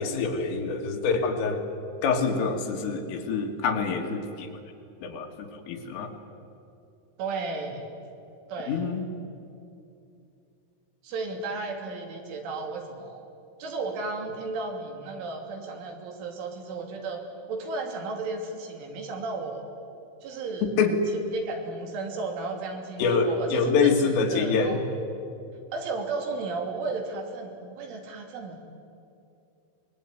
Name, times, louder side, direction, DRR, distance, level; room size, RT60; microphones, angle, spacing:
voice 1, 0.0-1.6 2.0-4.6 5.0-5.3 5.7-6.1 8.7-9.0 20.8-21.0 23.0-24.8, left 5 dB, 80° left, 3 dB, 4.7 m, -25 dB
voice 2, 7.2-7.9 8.5-8.9 11.0-13.3 13.6-17.2 17.5-19.6 20.2-20.7 21.3-24.8 25.7-28.6, right 3 dB, 75° right, 3 dB, 5.1 m, -34 dB
25.0 x 21.5 x 9.5 m, 2.6 s
omnidirectional pair, 5.8 m